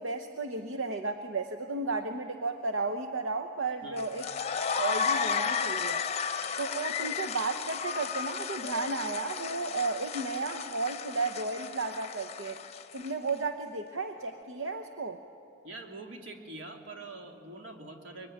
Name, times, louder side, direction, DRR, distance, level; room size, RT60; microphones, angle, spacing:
voice 1, 0.0-4.3 4.8-6.0 6.6-12.6 12.9-15.2, right 3 dB, 90° right, 7 dB, 1.0 m, -33 dB
sound 1, 4.0-13.3, left 6 dB, 35° left, 0.7 m, -34 dB
voice 2, 15.6-18.3, right 2 dB, 70° right, 2 dB, 2.9 m, -44 dB
24.5 x 23.0 x 10.0 m, 2.8 s
head